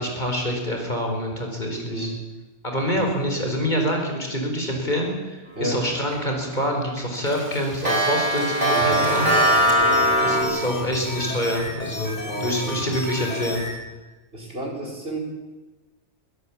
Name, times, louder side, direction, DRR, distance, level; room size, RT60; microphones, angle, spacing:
voice 1, 0.0-2.1 2.6-9.4 10.2-13.6, equal, 40° left, 2 dB, 5.1 m, -26 dB
voice 2, 1.7-2.2 2.9-3.1 5.5-5.9 8.7-10.1 12.2-12.8 14.3-15.2, right 1 dB, 55° right, 0 dB, 5.0 m, -31 dB
Clock, 5.7-6.1 6.5-6.6 7.0-10.4, equal, 80° right, 7.7 m, -20 dB
sound 1, 8.7-13.7, left 2 dB, 80° left, 8.0 m, -33 dB
23.0 x 16.0 x 8.8 m, 1.1 s
omnidirectional pair, 1.2 m